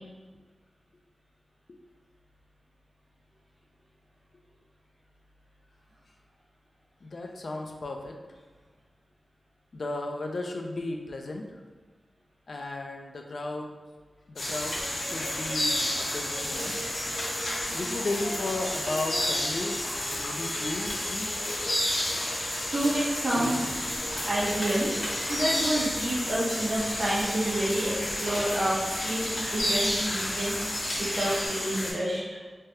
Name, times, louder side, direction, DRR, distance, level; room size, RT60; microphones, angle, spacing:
voice 1, 7.0-8.1 9.7-11.5 12.5-13.7 14.3-16.7 17.7-21.6, left 2 dB, 65° left, 2 dB, 0.3 m, -35 dB
sound 1, 14.4-31.9, left 1 dB, 85° left, 1.0 m, -31 dB
sound 2, 14.8-28.4, equal, 40° left, 0.9 m, -41 dB
voice 2, 22.7-23.7 24.1-24.9 25.3-28.8 29.0-29.3 29.5-30.6 31.0-32.2, right 1 dB, 65° right, -7 dB, 1.0 m, -28 dB
sound 3, 23.6-31.5, equal, ahead, 0.8 m, -42 dB
3.2 x 2.2 x 2.8 m, 1.3 s
wide cardioid pair, 85°, 0 cm